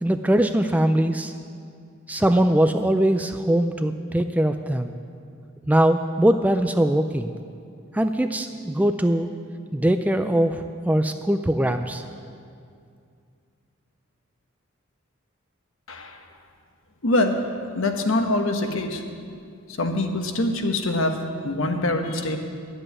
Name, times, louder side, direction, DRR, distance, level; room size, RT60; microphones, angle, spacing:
voice 1, 0.0-1.3 2.1-4.9 5.7-7.3 7.9-9.3 9.7-12.0, right 1 dB, 5° right, 8 dB, 0.3 m, -21 dB
voice 2, 15.9-16.2 17.0-17.4 17.7-19.0 19.8-22.4, left 2 dB, 70° left, 5 dB, 1.1 m, -24 dB
11.0 x 7.8 x 9.6 m, 2.3 s
head